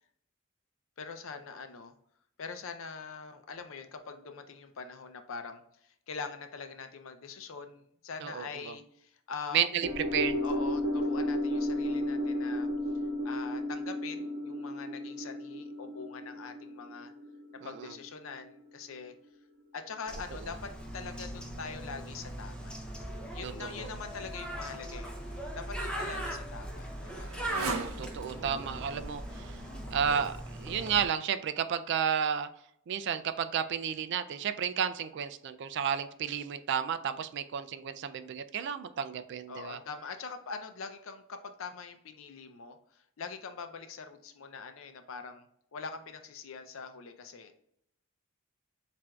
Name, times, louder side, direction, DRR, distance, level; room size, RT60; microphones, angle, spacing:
voice 1, 1.0-1.9 2.4-9.7 10.4-12.7 13.2-17.1 17.5-19.1 19.7-22.7 23.3-27.3 39.5-45.5 45.7-47.6, left 5 dB, 65° left, 7 dB, 0.5 m, -43 dB
voice 2, 8.2-8.7 9.5-10.4 17.6-17.9 23.4-23.9 27.6-29.5 29.9-32.5 32.9-39.8, right 8 dB, 55° right, 11 dB, 0.3 m, -32 dB
sound 1, 9.8-18.3 18.6-18.7, left 1 dB, 30° right, 1.1 m, -33 dB
Bird, 20.1-31.1, right 1 dB, 5° left, 0.6 m, -40 dB
Motorcycle, 25.7-30.9, right 3 dB, 85° right, 0.7 m, -43 dB
7.4 x 2.6 x 2.3 m, 0.72 s
head